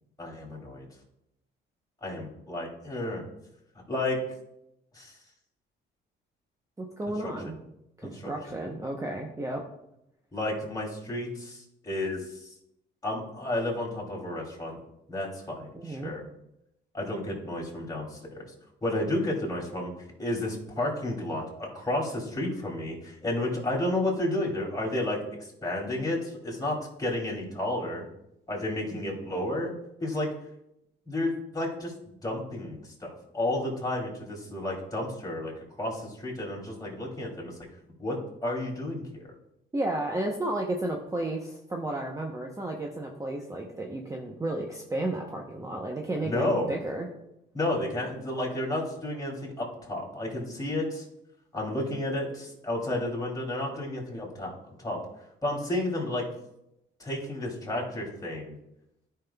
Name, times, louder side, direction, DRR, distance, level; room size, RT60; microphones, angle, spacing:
voice 1, 0.2-0.8 2.0-3.2 3.9-4.2 4.9-5.2 7.1-7.3 8.0-8.3 10.3-12.5 13.0-14.8 15.1-16.2 16.9-18.5 18.8-19.9 20.2-28.0 28.5-29.7 30.0-30.3 31.1-35.5 35.8-37.6 38.0-39.3 46.2-46.7 47.5-51.1 51.5-54.5 54.8-55.0 55.4-56.2 57.0-58.5, left 1 dB, 20° left, -2 dB, 2.9 m, -31 dB
voice 2, 6.8-7.6 8.0-9.6 15.7-16.1 39.7-47.1, right 1 dB, 15° right, 1 dB, 0.8 m, -33 dB
12.5 x 5.7 x 2.3 m, 0.83 s
cardioid pair, 90°, 20 cm